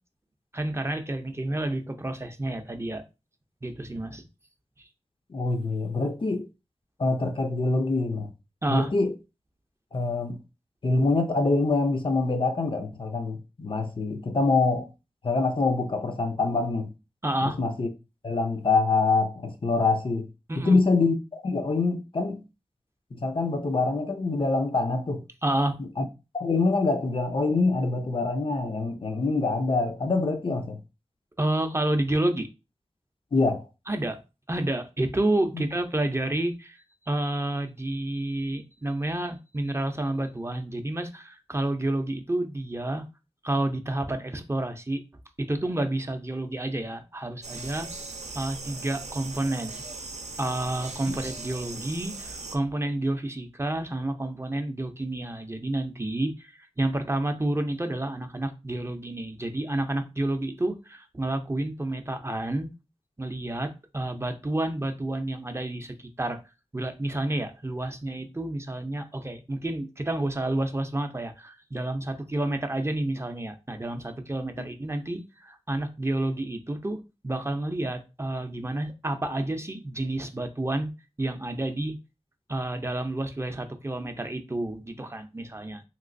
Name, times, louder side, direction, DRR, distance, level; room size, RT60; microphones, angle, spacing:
voice 1, 0.5-3.0 3.6-4.2 4.8-4.9 8.6-8.9 17.2-17.6 20.5-20.8 25.4-25.8 31.4-32.5 33.9-34.2 34.5-43.1 43.4-45.0 45.4-47.9 48.3-49.8 50.4-62.7 63.2-66.4 66.7-80.9 81.2-82.0 82.5-85.8, right 1 dB, 25° right, 0.5 m, -30 dB
voice 2, 5.3-6.5 7.0-8.3 8.7-9.1 9.9-10.4 10.8-14.9 15.2-16.9 17.6-17.9 18.2-20.3 20.6-22.4 23.2-25.2 26.0-26.1 26.3-30.8 33.3-33.6 51.1-51.2, left 3 dB, 50° left, 0.5 m, -25 dB
sound 1, 47.4-52.6, right 3 dB, 80° right, 0.6 m, -39 dB
3.1 x 3.0 x 2.5 m
wide cardioid pair, 55°, 12 cm